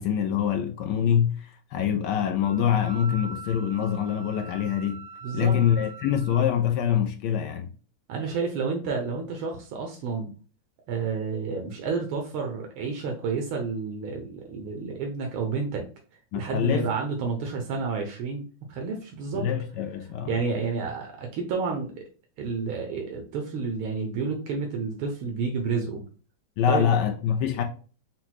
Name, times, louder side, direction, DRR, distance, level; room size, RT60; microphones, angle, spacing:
voice 1, 0.0-5.0 5.3-7.7 16.3-16.9 19.3-20.3 26.6-27.6, left 9 dB, 75° left, 1.0 m, -25 dB
Wind instrument woodwind instrument, 2.4-6.4, right 3 dB, 35° right, 1.1 m, -43 dB
voice 2, 5.2-5.6 8.1-10.3 10.9-15.8 16.3-19.5 20.3-21.9 22.4-26.0 26.7-26.9, right 5 dB, 80° right, 1.7 m, -30 dB
6.1 x 2.2 x 4.1 m
omnidirectional pair, 2.3 m